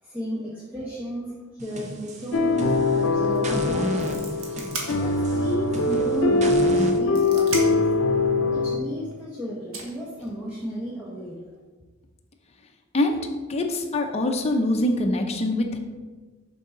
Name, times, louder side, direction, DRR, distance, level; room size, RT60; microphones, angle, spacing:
voice 1, 0.0-7.8 8.5-11.4, equal, 10° right, -6 dB, 1.0 m, -34 dB
sound 1, 1.6-3.0 3.4-7.0, right 1 dB, 35° right, 0.8 m, -32 dB
sound 2, 2.3-8.8, left 3 dB, 85° left, 0.6 m, -22 dB
sound 3, 3.2-3.4 3.7-5.5 5.9-6.0 6.7-7.9 9.1-9.2 9.7-10.7, right 3 dB, 85° right, 1.3 m, -36 dB
voice 2, 13.5-15.8, left 1 dB, 30° left, 3 dB, 0.7 m, -24 dB
6.6 x 5.5 x 3.8 m, 1.3 s
head